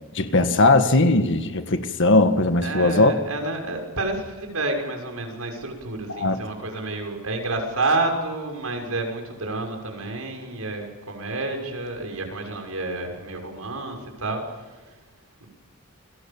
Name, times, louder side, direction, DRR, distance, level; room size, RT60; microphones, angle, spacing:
voice 1, 0.1-3.1 6.1-6.4, left 2 dB, 60° left, 8 dB, 1.7 m, -19 dB
voice 2, 2.6-15.0 15.4-15.5, right 2 dB, 80° right, 3 dB, 6.4 m, -29 dB
29.5 x 22.5 x 7.3 m, 1.1 s
head